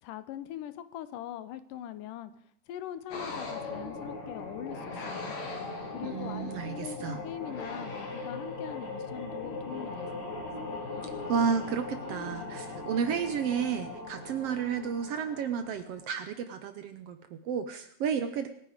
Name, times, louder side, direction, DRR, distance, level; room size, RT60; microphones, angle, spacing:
voice 1, 0.0-2.3 2.7-5.3 5.9-10.2, left 11 dB, 85° left, 14 dB, 2.4 m, -41 dB
sound 1, 3.1-16.1, left 3 dB, 55° left, 3.5 m, -39 dB
voice 2, 6.0-7.2 11.0-18.5, right 7 dB, 70° right, 9 dB, 1.5 m, -32 dB
24.0 x 9.9 x 5.1 m, 0.64 s
omnidirectional pair, 3.7 m